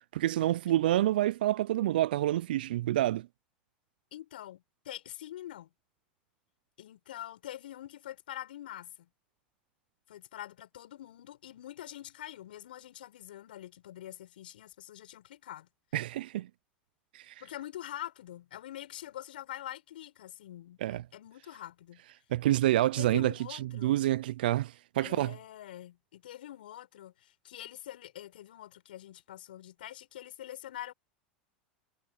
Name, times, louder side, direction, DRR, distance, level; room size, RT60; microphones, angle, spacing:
voice 1, 0.1-3.3 15.9-16.5 17.1-17.4 20.8-21.0 22.3-25.4, right 14 dB, 75° right, 0.6 m, -28 dB
voice 2, 4.1-5.7 6.8-9.1 10.1-15.7 17.4-22.0 22.8-24.0 25.0-30.9, left 13 dB, 75° left, 6.7 m, -45 dB
hypercardioid pair, 85°, 5 cm